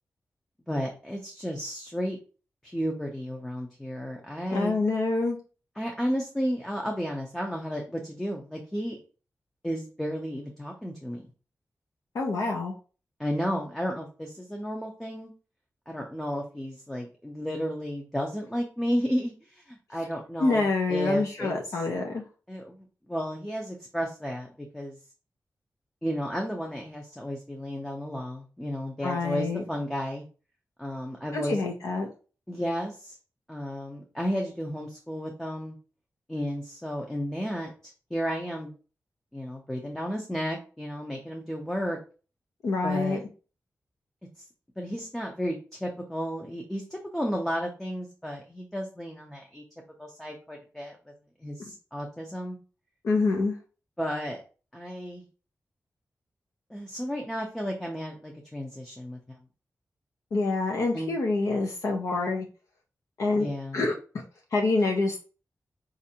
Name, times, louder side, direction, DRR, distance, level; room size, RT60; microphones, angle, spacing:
voice 1, 0.7-2.2 2.6-4.7 5.8-9.0 9.6-11.2 13.2-15.3 15.9-21.8 22.5-25.0 26.0-30.2 30.8-31.6 32.5-33.2 33.5-35.8 36.3-38.7 39.3-42.0 42.8-43.2 44.4-44.5 44.8-49.6 50.0-51.0 51.4-52.6 54.0-54.4 54.7-55.2 56.7-59.4 60.9-61.1 63.3-63.8, equal, 5° left, 0 dB, 0.5 m, -33 dB
voice 2, 4.5-5.4 12.1-12.7 20.4-22.2 29.0-29.6 31.3-32.1 42.6-43.2 53.0-53.5 60.3-62.4 63.2-63.9 64.5-65.2, left 3 dB, 75° left, 1 dB, 0.6 m, -26 dB
4.2 x 2.5 x 2.7 m, 0.36 s
wide cardioid pair, 175°, 5 cm